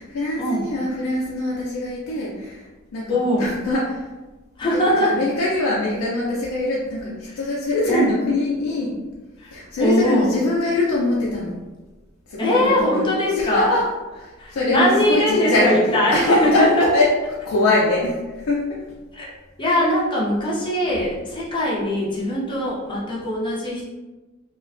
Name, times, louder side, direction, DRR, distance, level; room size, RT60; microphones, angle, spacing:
voice 1, 0.0-2.7 2.9-4.1 4.7-9.0 9.5-11.6 12.3-13.9 14.2-17.1 17.4-18.8, left 2 dB, 85° left, -5 dB, 0.4 m, -23 dB
voice 2, 3.1-3.5 4.6-5.2 7.9-8.1 9.4-10.3 12.4-13.8 14.4-16.9 19.1-19.3 19.6-23.8, left 1 dB, 25° left, -6 dB, 0.6 m, -21 dB
2.4 x 2.1 x 2.4 m, 1.2 s
head